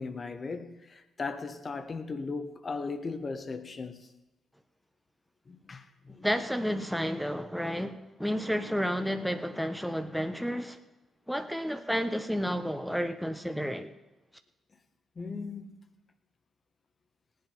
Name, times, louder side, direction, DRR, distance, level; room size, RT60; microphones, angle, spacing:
voice 1, 0.0-4.1 5.5-6.2 15.2-15.8, left 4 dB, 45° left, 1.3 m, -37 dB
voice 2, 6.1-10.8 11.3-13.9, equal, ahead, 1.1 m, -31 dB
18.0 x 8.0 x 5.6 m
hypercardioid pair, 50°, 0 cm